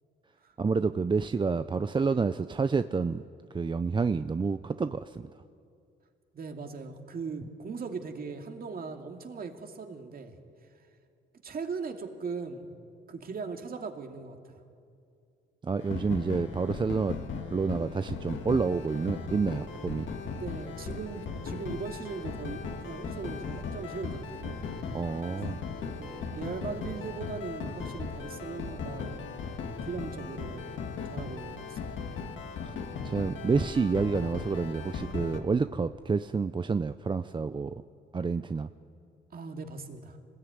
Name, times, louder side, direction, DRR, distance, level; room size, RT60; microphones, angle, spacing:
voice 1, 0.6-3.2 3.5-5.3 15.6-17.2 17.5-20.1 24.9-25.6 32.6-32.8 33.0-37.8 38.1-38.7, right 4 dB, 25° right, 11 dB, 0.6 m, -29 dB
voice 2, 6.3-10.4 11.4-12.7 13.1-14.6 20.4-24.6 25.9-29.3 29.7-30.8 31.0-31.9 39.3-40.2, right 5 dB, 50° right, 5 dB, 2.5 m, -39 dB
sound 1, 15.8-35.4, left 5 dB, 75° left, 2.5 m, -38 dB
25.5 x 20.0 x 9.5 m, 2.4 s
cardioid pair, 90°, 20 cm